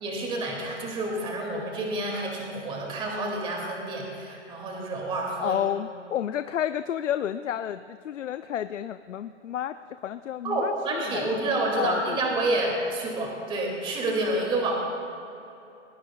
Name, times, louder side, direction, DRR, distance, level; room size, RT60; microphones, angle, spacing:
voice 1, 0.0-5.6 10.4-14.8, right 2 dB, 15° right, 0 dB, 2.4 m, -29 dB
voice 2, 5.4-11.3 11.8-12.6, left 10 dB, 90° left, 11 dB, 0.6 m, -31 dB
21.0 x 19.0 x 2.4 m, 2.9 s
hypercardioid pair, 155°, 36 cm